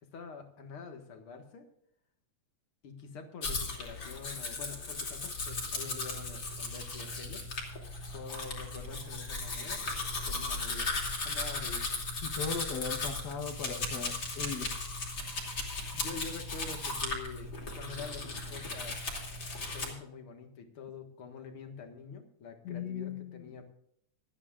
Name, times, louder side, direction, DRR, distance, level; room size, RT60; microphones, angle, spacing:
voice 1, 0.0-1.7 2.8-7.4 8.1-11.0 11.2-12.0 14.4-14.7 15.8-19.0 19.7-23.7, left 5 dB, 50° left, 5 dB, 2.2 m, -46 dB
Domestic sounds home sounds, 3.4-19.9, left 3 dB, 30° left, 3.1 m, -37 dB
voice 2, 12.2-14.7 22.6-23.6, left 6 dB, 70° left, 4 dB, 0.9 m, -38 dB
26.5 x 10.0 x 2.5 m, 0.72 s
omnidirectional pair, 3.7 m